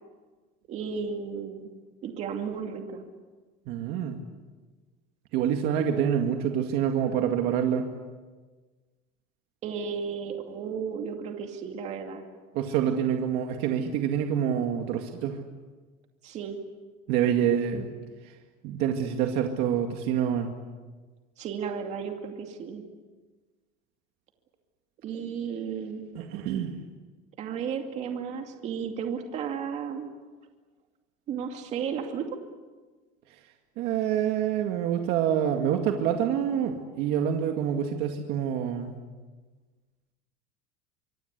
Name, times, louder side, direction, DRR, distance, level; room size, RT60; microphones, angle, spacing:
voice 1, 0.7-1.7 2.0-3.0 9.6-12.3 16.2-16.6 21.4-22.8 25.0-26.1 27.4-30.1 31.3-32.4, right 6 dB, 40° right, 4 dB, 2.4 m, -34 dB
voice 2, 3.7-4.2 5.3-7.9 12.5-15.4 17.1-17.9 18.6-20.5 26.2-26.7 33.8-39.0, right 9 dB, 60° right, 3 dB, 2.2 m, -26 dB
25.5 x 24.5 x 8.3 m, 1.3 s
cardioid pair, 165°, 19 cm